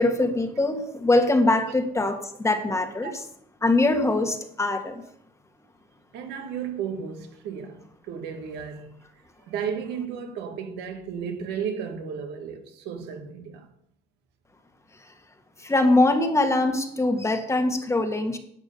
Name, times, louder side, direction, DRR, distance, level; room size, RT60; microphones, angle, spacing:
voice 1, 0.0-3.1 3.6-5.0 15.6-18.4, left 2 dB, 15° left, 1.6 m, -22 dB
voice 2, 6.1-9.0 9.4-13.7 15.7-15.8, right 7 dB, 85° right, 1.9 m, -34 dB
11.0 x 7.9 x 6.9 m
cardioid pair, 110°, 17 cm